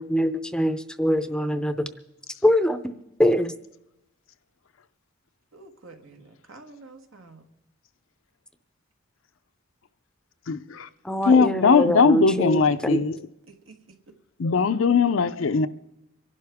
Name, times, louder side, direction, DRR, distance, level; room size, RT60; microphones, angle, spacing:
voice 1, 0.0-1.9 2.4-2.8 3.2-3.5 11.0-13.0, equal, 5° left, 0.6 m, -23 dB
voice 2, 5.5-7.4 13.5-14.0, right 3 dB, 80° right, 1.5 m, -48 dB
voice 3, 10.5-10.9 11.3-13.1 14.4-15.7, left 5 dB, 75° left, 0.5 m, -20 dB
25.5 x 11.5 x 3.5 m
head